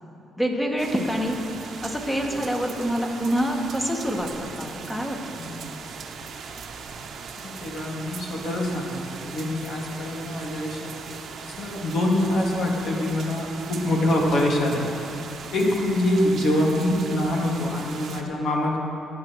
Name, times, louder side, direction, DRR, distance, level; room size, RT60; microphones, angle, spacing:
voice 1, 0.4-1.4 1.8-5.7 15.6-15.9, equal, 10° left, 1 dB, 1.4 m, -27 dB
sound 1, 0.8-18.2, right 5 dB, 65° right, 0.9 m, -39 dB
voice 2, 7.4-10.9 11.6-14.9 15.5-18.8, left 1 dB, 70° left, -2 dB, 2.0 m, -25 dB
18.0 x 9.0 x 3.1 m, 2.8 s
cardioid pair, 90°, 0 cm